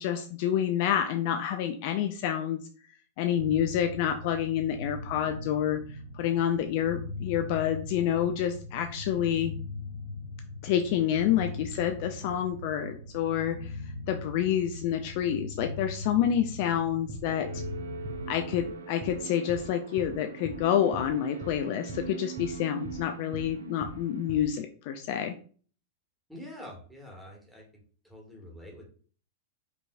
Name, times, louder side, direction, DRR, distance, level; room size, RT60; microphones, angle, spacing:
voice 1, 0.0-2.6 3.2-9.5 10.6-13.8 14.1-17.5 18.3-25.4, left 10 dB, 45° left, 6 dB, 0.3 m, -28 dB
sound 1, 3.4-18.5, left 2 dB, 80° left, 0.9 m, -40 dB
sound 2, 17.1-17.2 17.6-17.7 18.0-18.2 18.5-18.7 19.0-19.2 19.5-19.6 20.0-20.1 20.4-20.6 20.9-21.1 21.4-21.6 21.9-22.0 22.4-22.5 22.8-23.0 23.3-23.5 23.8-24.0 24.3-24.4, right 2 dB, 25° right, 0.6 m, -41 dB
sound 3, 17.3-24.4, right 5 dB, 70° right, 0.4 m, -42 dB
voice 2, 26.3-27.6 28.0-28.9, left 1 dB, 5° right, -2 dB, 1.3 m, -46 dB
5.0 x 3.0 x 2.2 m, 0.43 s
figure-of-eight pair, 95°, 0 cm